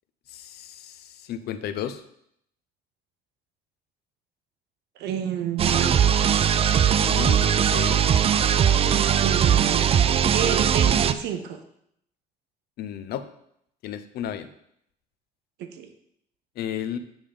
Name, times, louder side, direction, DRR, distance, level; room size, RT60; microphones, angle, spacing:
voice 1, 0.3-2.0 7.0-8.0 8.7-9.0 12.8-13.2 13.8-14.5 16.6-17.0, left 9 dB, 70° left, 11 dB, 0.7 m, -33 dB
voice 2, 5.0-5.9 9.2-9.9 10.2-11.6 15.6-15.9, right 9 dB, 80° right, 8 dB, 0.7 m, -29 dB
sound 1, 5.6-11.1, right 8 dB, 35° right, 0.4 m, -20 dB
8.9 x 3.6 x 5.0 m, 0.73 s
cardioid pair, 110°, 17 cm